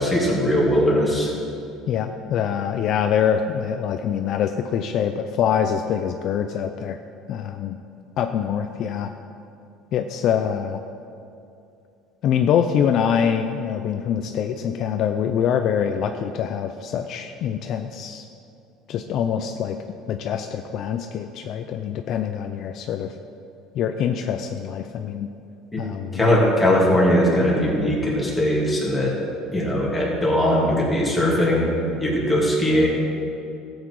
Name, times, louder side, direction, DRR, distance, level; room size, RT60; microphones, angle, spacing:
voice 1, 0.0-1.3 25.7-25.8 26.1-29.1 29.5-32.9, equal, 10° left, -5 dB, 2.8 m, -20 dB
voice 2, 1.9-7.0 7.3-7.8 8.2-9.1 9.9-10.8 12.2-18.2 18.9-19.8 20.1-23.1 23.8-25.3 25.8-26.2, left 8 dB, 50° left, 7 dB, 0.5 m, -24 dB
14.0 x 8.1 x 4.8 m, 2.6 s
cardioid pair, 130°, 0 cm